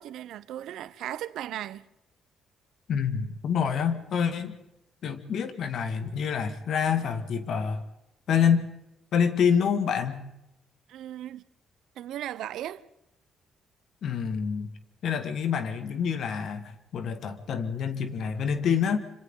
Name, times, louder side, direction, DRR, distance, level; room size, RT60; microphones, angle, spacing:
voice 1, 0.0-1.9 10.9-11.4 12.0-12.8, right 12 dB, 80° right, 0.7 m, -37 dB
voice 2, 2.9-4.6 5.0-7.8 8.3-8.7 9.1-10.2 14.0-14.7 15.0-19.0, left 7 dB, 70° left, 2.0 m, -27 dB
27.0 x 26.0 x 3.9 m
cardioid pair, 90°, 0 cm